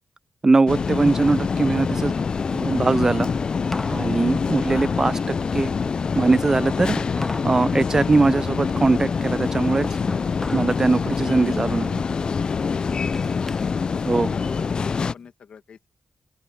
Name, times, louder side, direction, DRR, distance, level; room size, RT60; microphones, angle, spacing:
voice 1, 0.4-2.1 2.5-3.3 3.9-5.7 6.2-7.0 7.4-10.0 10.5-12.0 14.1-14.3, right 3 dB, 30° right, 0.3 m, -21 dB
sound 1, 0.7-15.1, left 5 dB, 45° left, 0.3 m, -25 dB
sound 2, 2.2-12.2, left 3 dB, 30° left, 3.7 m, -47 dB
sound 3, 3.2-4.1 4.4-7.6 7.9-10.8 11.2-11.6 12.1-13.8 14.1-15.3, left 1 dB, 15° left, 0.9 m, -38 dB
voice 2, 13.2-13.7 14.0-15.9, left 7 dB, 85° left, 2.0 m, -46 dB
open air
wide cardioid pair, 130°, 2 cm